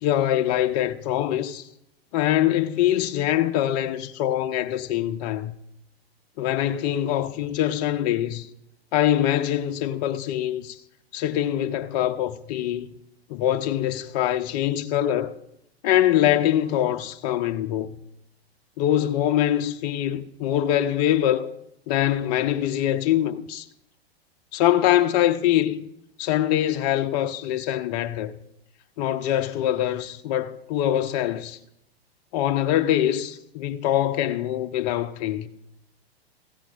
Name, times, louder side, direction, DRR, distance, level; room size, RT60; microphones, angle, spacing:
voice 1, 0.0-1.7 2.1-5.5 6.4-8.5 8.9-10.8 11.1-12.9 13.3-15.3 15.8-18.0 18.8-21.5 21.9-23.7 24.5-25.9 26.2-28.3 29.0-31.6 32.3-35.5, left 12 dB, 40° left, 0.8 m, -23 dB
16.0 x 15.0 x 2.5 m
hypercardioid pair, 110°, 32 cm